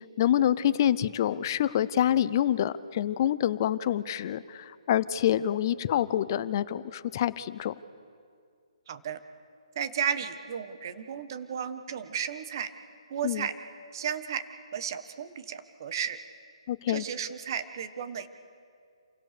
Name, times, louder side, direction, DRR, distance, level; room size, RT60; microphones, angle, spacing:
voice 1, 0.2-7.7 13.2-13.5 16.7-17.1, left 11 dB, 35° left, 15 dB, 0.7 m, -26 dB
voice 2, 8.9-9.2 9.7-12.7 13.1-13.5 13.9-14.4 14.7-16.2 16.9-18.3, right 8 dB, 40° right, 11 dB, 1.4 m, -34 dB
27.5 x 17.0 x 6.8 m, 2.3 s
hypercardioid pair, 160°, 3 cm